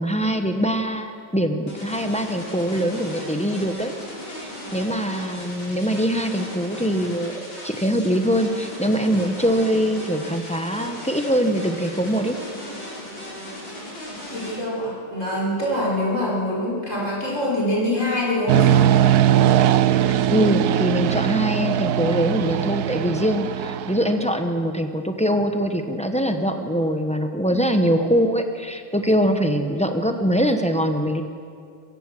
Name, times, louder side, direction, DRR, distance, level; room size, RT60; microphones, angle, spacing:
voice 1, 0.0-3.9 4.3-12.4 20.3-31.2, equal, 5° left, 5 dB, 0.6 m, -23 dB
sound 1, 1.7-14.5, left 1 dB, 65° left, 6.3 m, -37 dB
voice 2, 14.3-18.9 27.5-27.7, left 1 dB, 35° left, -5 dB, 5.6 m, -25 dB
sound 2, 18.5-24.3, right 10 dB, 70° right, 1.0 m, -20 dB
23.5 x 15.5 x 7.7 m, 2.3 s
omnidirectional pair, 2.2 m